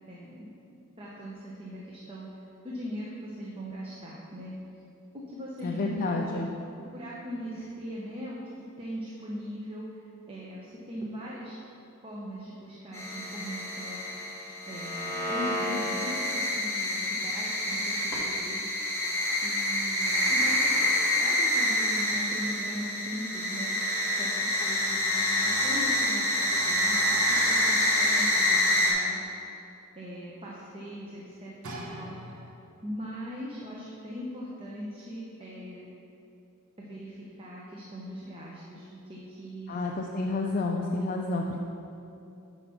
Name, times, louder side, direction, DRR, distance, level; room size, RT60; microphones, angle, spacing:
voice 1, 0.1-0.5 1.0-2.3 2.6-4.5 5.3-6.4 6.9-8.4 8.8-11.6 12.0-14.0 14.7-18.6 19.4-23.8 24.2-29.2 29.9-32.2 32.8-35.9 36.8-39.8 40.4-40.5, equal, 25° right, -5 dB, 0.7 m, -40 dB
voice 2, 5.6-6.5 39.7-41.6, left 2 dB, 40° left, 0 dB, 0.4 m, -30 dB
sound 1, 12.9-28.9, left 1 dB, 15° left, 1.2 m, -27 dB
sound 2, 31.6-32.9 33.7-33.8, right 1 dB, 65° right, 0.9 m, -41 dB
6.0 x 4.8 x 5.5 m, 2.7 s
head